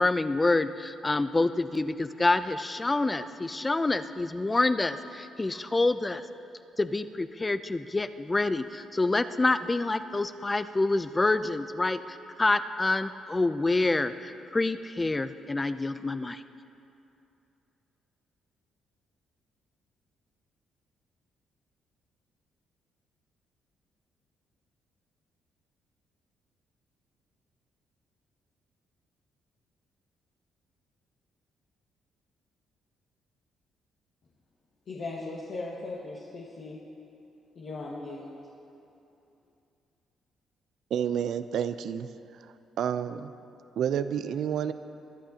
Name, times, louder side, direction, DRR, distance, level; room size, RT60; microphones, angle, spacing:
voice 1, 0.0-6.2 6.8-16.4, left 2 dB, 20° left, 12 dB, 0.5 m, -27 dB
voice 2, 34.9-36.8 37.5-38.3, left 2 dB, 60° left, -5 dB, 1.6 m, -38 dB
voice 3, 40.9-42.1 42.8-43.3 43.8-44.7, right 8 dB, 70° right, 12 dB, 0.5 m, -29 dB
23.0 x 12.0 x 2.9 m, 2.7 s
cardioid pair, 90°, 0 cm